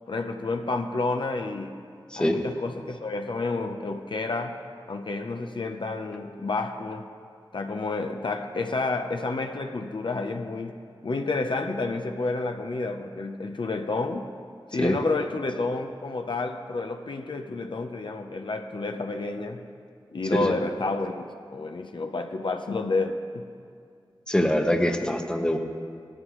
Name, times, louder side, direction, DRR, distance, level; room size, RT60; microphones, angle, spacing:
voice 1, 0.1-1.8 2.1-4.6 4.9-7.1 7.5-14.3 14.7-19.6 20.1-21.2 21.5-23.5, left 3 dB, 60° left, 5 dB, 0.7 m, -30 dB
voice 2, 2.1-2.4 14.8-15.0 20.3-20.5 24.3-25.6, left 1 dB, 10° left, 4 dB, 1.0 m, -24 dB
17.5 x 13.5 x 3.1 m, 2.2 s
wide cardioid pair, 90°, 9 cm